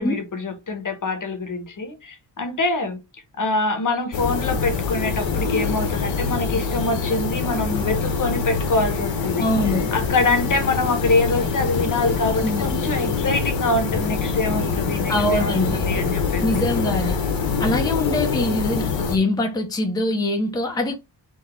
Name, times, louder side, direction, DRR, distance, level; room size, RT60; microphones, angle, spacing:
voice 1, 0.0-3.0 3.4-9.5 9.9-15.5 15.9-16.4, left 2 dB, 45° left, 1.1 m, -24 dB
sound 1, 4.1-19.2, left 5 dB, 80° left, 1.2 m, -24 dB
voice 2, 9.4-9.9 12.4-12.6 15.1-15.9 16.4-17.2 17.6-20.9, left 1 dB, 10° left, 0.7 m, -23 dB
4.0 x 3.0 x 4.3 m
wide cardioid pair, 140°, 44 cm